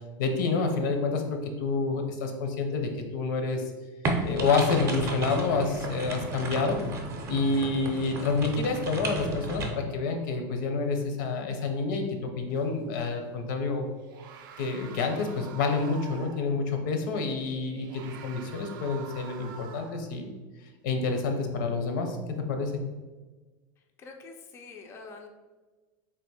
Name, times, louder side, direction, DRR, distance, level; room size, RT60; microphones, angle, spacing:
voice 1, 0.2-3.6 4.2-6.8 7.3-13.9 14.6-20.3 20.8-22.2 22.5-22.7, left 4 dB, 80° left, 5 dB, 0.7 m, -28 dB
sound 1, 4.0-9.7, right 2 dB, 25° right, 0.6 m, -33 dB
terrifying scream, 5.5-8.3 12.5-12.6 13.9-16.6 17.7-20.2, right 7 dB, 85° right, 0.4 m, -47 dB
voice 2, 24.0-25.3, left 4 dB, 25° left, 3 dB, 0.3 m, -45 dB
3.4 x 2.5 x 4.2 m, 1.3 s
supercardioid pair, 155°, 11 cm